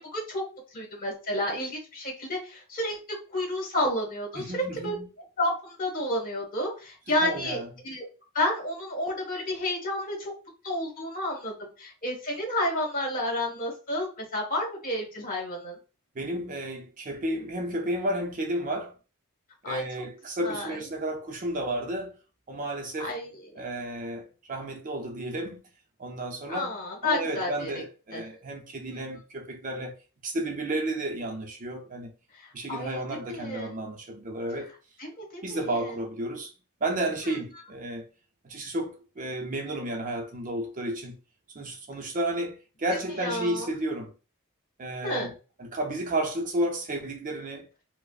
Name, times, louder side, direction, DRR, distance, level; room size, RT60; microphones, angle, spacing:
voice 1, 0.1-0.4 0.7-3.0 3.3-4.4 4.8-4.9 5.4-8.0 8.3-10.3 10.6-11.5 11.8-15.8 19.6-19.8 20.4-20.8 23.0-23.6 26.5-27.7 28.1-28.2 32.7-33.0 33.3-33.7 35.0-35.9 43.2-43.7 45.0-45.3, left 1 dB, 40° left, 1.4 m, -30 dB
voice 2, 4.4-5.1 7.1-7.7 16.2-19.0 19.6-22.2 22.5-23.1 23.6-25.6 26.0-30.0 30.2-32.1 32.5-34.7 35.4-36.5 36.8-38.0 38.4-41.2 41.5-44.1 44.8-45.3 45.6-47.7, right 1 dB, 35° right, 0.5 m, -32 dB
4.7 x 2.0 x 2.4 m
head